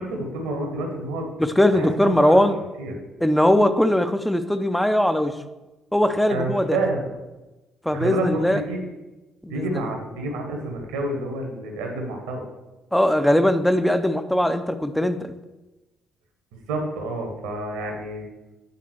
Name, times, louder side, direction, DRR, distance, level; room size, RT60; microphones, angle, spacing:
voice 1, 0.0-1.3 1.7-2.5 2.8-2.9 6.3-7.0 7.9-8.8 9.5-12.4 16.5-18.3, right 2 dB, 70° right, 2 dB, 1.1 m, -29 dB
voice 2, 1.4-2.6 3.2-5.3 5.9-6.8 7.8-8.6 9.4-9.7 12.9-15.3, left 1 dB, 5° left, 10 dB, 0.5 m, -20 dB
8.3 x 3.8 x 4.4 m, 1.1 s
figure-of-eight pair, 45°, 0 cm